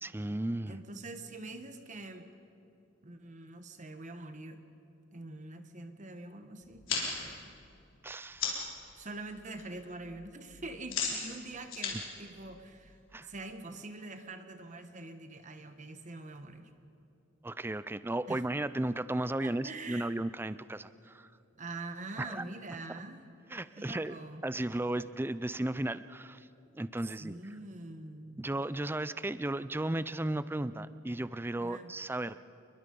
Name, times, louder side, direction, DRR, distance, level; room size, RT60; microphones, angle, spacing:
voice 1, 0.0-0.8 8.0-8.5 13.1-13.3 17.4-21.3 22.2-22.4 23.5-24.1 24.4-26.5 26.7-27.4 28.4-32.4, right 1 dB, 10° right, 15 dB, 0.4 m, -35 dB
voice 2, 0.7-2.3 3.0-4.6 5.1-7.5 8.9-16.7 18.3-18.4 19.4-20.1 21.6-23.2 23.8-24.4 27.2-28.4 31.5-31.9, right 2 dB, 40° right, 7 dB, 1.3 m, -45 dB
sound 1, 6.6-8.8 9.2-9.6 9.9-13.2, left 5 dB, 70° left, 4.3 m, -37 dB
28.5 x 22.0 x 5.4 m, 2.6 s
head